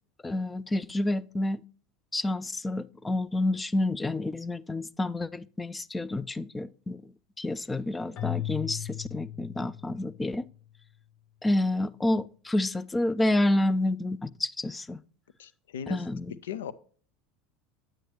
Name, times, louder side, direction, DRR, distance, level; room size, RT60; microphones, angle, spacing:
voice 1, 0.2-1.6 2.1-7.1 7.4-10.4 11.4-15.0 15.9-16.4, left 1 dB, 15° left, 0.4 m, -29 dB
Keyboard (musical), 8.2-10.4, left 13 dB, 45° left, 0.9 m, -36 dB
voice 2, 15.4-16.0 16.4-16.7, left 8 dB, 70° left, 0.5 m, -37 dB
9.2 x 8.9 x 3.0 m
figure-of-eight pair, 75°, 0 cm